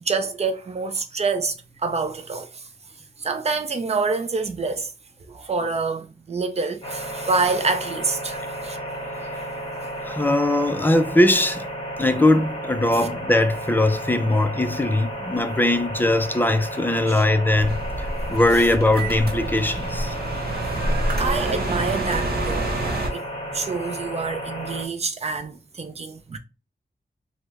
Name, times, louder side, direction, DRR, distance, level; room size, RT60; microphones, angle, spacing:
voice 1, 0.0-2.7 3.2-4.9 5.3-8.8 12.9-13.1 17.1-17.2 18.5-18.6 21.2-22.7 23.1-23.3 23.5-26.4, right 4 dB, 40° right, 0.5 m, -27 dB
sound 1, 6.8-24.9, equal, 30° left, 0.9 m, -33 dB
voice 2, 10.0-11.6 12.0-20.1, left 1 dB, 10° left, 0.4 m, -20 dB
sound 2, 17.5-23.1, right 1 dB, 70° right, 1.0 m, -27 dB
3.1 x 2.1 x 3.4 m
wide cardioid pair, 105°, 16 cm